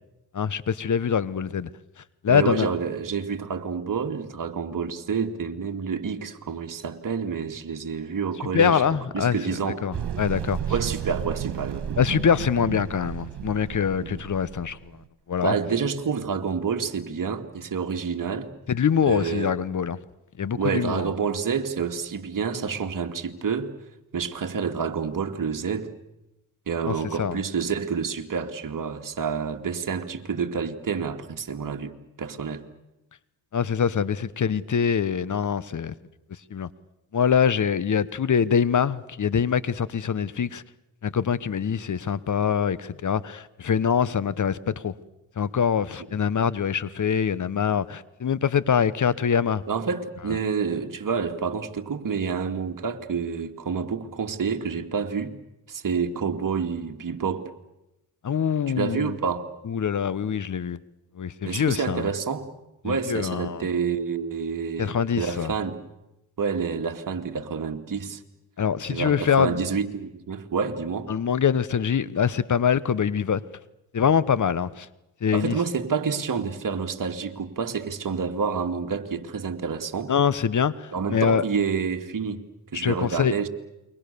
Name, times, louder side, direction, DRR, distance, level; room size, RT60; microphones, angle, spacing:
voice 1, 0.3-1.7 2.2-2.7 8.5-9.4 9.8-10.6 12.0-14.8 15.3-15.5 18.7-20.0 20.4-21.1 26.9-27.4 33.5-35.9 36.5-36.7 37.1-40.6 41.0-44.9 45.4-49.6 58.2-59.1 59.7-60.8 61.2-62.1 62.8-63.7 64.8-65.5 68.6-69.6 71.1-73.4 73.9-74.9 75.2-75.6 80.1-81.4 82.7-83.5, left 7 dB, 45° left, 1.2 m, -24 dB
voice 2, 2.3-8.8 9.1-9.8 10.7-12.0 14.0-14.2 15.4-18.5 19.0-19.5 20.5-23.7 24.1-25.9 26.7-32.6 46.1-46.2 49.7-55.4 55.7-57.5 58.7-59.5 61.4-62.5 62.8-65.8 66.4-68.2 68.9-71.1 75.3-80.1 80.9-82.4 82.7-83.5, right 6 dB, 45° right, 2.4 m, -28 dB
sound 1, 9.9-15.1, right 9 dB, 65° right, 2.4 m, -33 dB
29.0 x 23.0 x 6.9 m
supercardioid pair, 65°, 43 cm